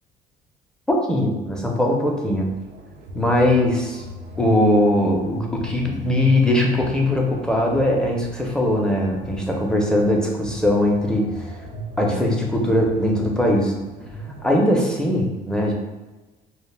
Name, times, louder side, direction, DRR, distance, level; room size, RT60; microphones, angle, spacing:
voice 1, 0.9-2.5 3.1-4.0 4.4-11.6 12.0-13.7 14.4-15.7, left 1 dB, 5° left, -1 dB, 0.5 m, -20 dB
sound 1, 2.3-15.0, right 1 dB, 85° right, 0.5 m, -38 dB
2.2 x 2.0 x 3.2 m, 1.1 s
cardioid pair, 110°, 17 cm